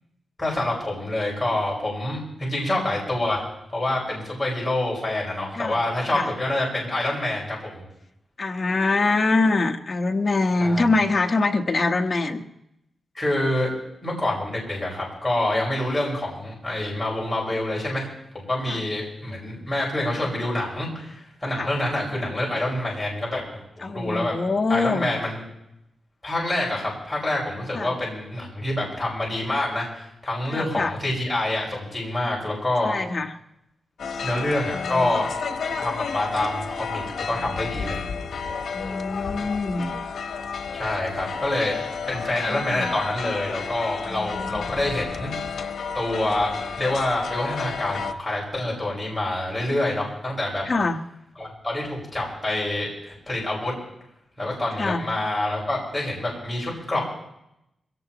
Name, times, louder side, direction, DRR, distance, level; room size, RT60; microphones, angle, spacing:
voice 1, 0.4-3.4 3.7-7.8 10.6-10.8 13.1-13.7 14.0-18.1 18.3-24.3 24.7-25.4 26.2-32.9 34.2-35.3 35.8-38.0 40.7-41.8 42.1-45.7 45.9-50.6 51.4-53.7 54.4-57.0, left 1 dB, 10° left, -4 dB, 5.4 m, -27 dB
voice 2, 8.4-12.4 18.7-18.8 21.6-21.7 23.8-25.1 27.7-27.9 30.5-30.9 32.8-33.3 34.7-35.2 38.7-39.9 42.4-42.9 44.1-44.7 50.6-51.0 54.8-55.0, left 3 dB, 35° left, 4 dB, 1.1 m, -24 dB
sound 1, 34.0-48.1, left 5 dB, 85° left, 1.0 m, -31 dB
22.5 x 17.0 x 3.0 m, 0.81 s
wide cardioid pair, 155°, 0 cm